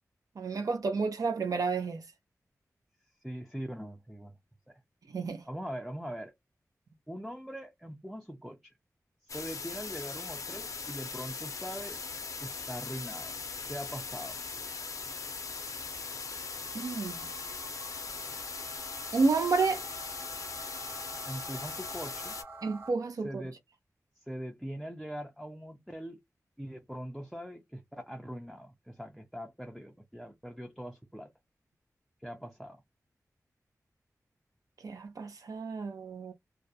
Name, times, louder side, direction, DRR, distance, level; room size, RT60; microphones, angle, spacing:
voice 1, 0.4-2.0 5.1-5.4 16.7-17.2 19.1-19.9 22.6-23.4 34.8-36.3, right 4 dB, 75° right, 0.5 m, -30 dB
voice 2, 3.2-4.4 4.7-4.8 5.5-6.3 7.1-8.7 9.2-12.0 12.4-13.4 13.7-14.4 21.2-22.4 23.2-23.6 24.2-26.2 26.6-31.3 32.2-32.8, equal, ahead, 0.4 m, -42 dB
sound 1, 9.3-22.4, left 4 dB, 65° left, 0.5 m, -40 dB
sound 2, 14.3-22.9, right 3 dB, 40° right, 0.8 m, -50 dB
2.3 x 2.0 x 2.7 m
wide cardioid pair, 110°, 6 cm